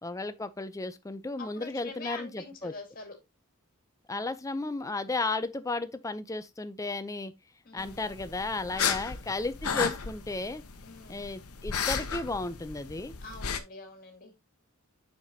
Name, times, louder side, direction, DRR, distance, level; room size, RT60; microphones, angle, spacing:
voice 1, 0.0-2.7 4.1-7.3 7.7-10.6 11.1-13.1, left 3 dB, 15° left, 0.5 m, -34 dB
voice 2, 1.4-3.2 7.6-8.1 8.7-9.0 10.8-11.2 13.2-14.3, left 3 dB, 40° left, 2.4 m, -45 dB
sound 1, 7.8-13.6, left 6 dB, 80° left, 0.9 m, -34 dB
7.7 x 5.8 x 2.7 m
head